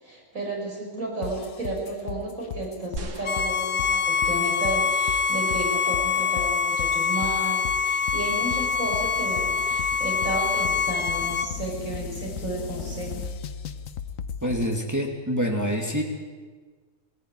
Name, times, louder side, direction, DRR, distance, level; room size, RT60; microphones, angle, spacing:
voice 1, 0.0-13.3, right 2 dB, 85° right, -2 dB, 5.8 m, -33 dB
sound 1, 1.2-14.8, left 6 dB, 80° left, 1.3 m, -36 dB
sound 2, 3.0-4.5 5.2-5.3, right 2 dB, 65° right, 1.9 m, -40 dB
Bowed string instrument, 3.2-11.5, left 5 dB, 45° left, 0.8 m, -25 dB
voice 2, 14.4-16.0, equal, 15° right, 0 dB, 2.3 m, -26 dB
19.0 x 15.0 x 9.7 m, 1.5 s
omnidirectional pair, 1.4 m